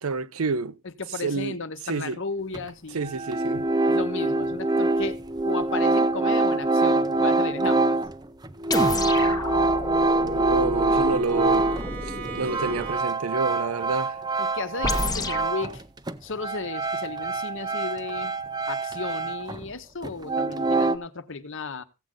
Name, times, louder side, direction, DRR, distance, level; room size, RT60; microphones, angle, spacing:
voice 1, 0.0-0.8 1.2-1.5 1.9-2.2 2.9-3.7 10.2-11.7 12.1-14.2, right 4 dB, 70° right, 0.6 m, -28 dB
voice 2, 0.8-3.1 3.9-5.2 5.4-8.0 14.4-15.8 16.2-18.3 18.7-21.8, left 4 dB, 60° left, 1.0 m, -34 dB
sound 1, 2.5-2.6 3.0-11.9 12.3-15.8 16.1-19.7 20.0-21.0, right 2 dB, 20° right, 0.5 m, -25 dB
sound 2, 8.7-13.0 14.8-15.5, left 2 dB, 15° left, 0.8 m, -31 dB
Bowed string instrument, 9.5-13.4, right 7 dB, 45° right, 1.4 m, -41 dB
16.0 x 7.7 x 3.8 m
head